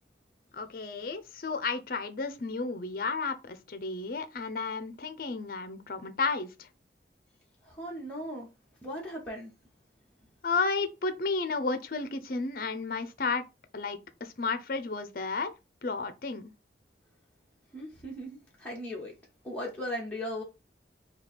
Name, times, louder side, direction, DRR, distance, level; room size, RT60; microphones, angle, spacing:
voice 1, 0.5-6.7 10.4-13.4 13.7-15.5 15.8-16.5, left 4 dB, 50° left, 0.5 m, -32 dB
voice 2, 7.6-8.5 8.8-9.5 17.7-19.1 19.4-20.4, equal, 5° left, 1.0 m, -37 dB
3.2 x 2.8 x 4.1 m
head